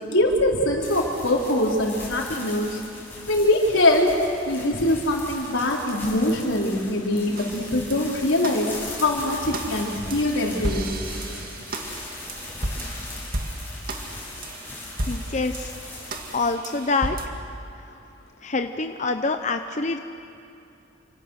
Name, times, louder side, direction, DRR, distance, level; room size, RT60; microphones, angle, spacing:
voice 1, 0.1-2.8 3.3-4.1 4.5-10.9, left 1 dB, 85° left, -1 dB, 4.2 m, -23 dB
sound 1, 0.8-16.6, left 2 dB, 10° left, 6.7 m, -39 dB
sound 2, 7.4-17.3, right 1 dB, 50° right, 2.2 m, -34 dB
voice 2, 15.1-15.7 16.3-17.2 18.4-20.0, left 3 dB, 40° left, 6 dB, 0.8 m, -26 dB
29.0 x 26.0 x 6.5 m, 2.7 s
head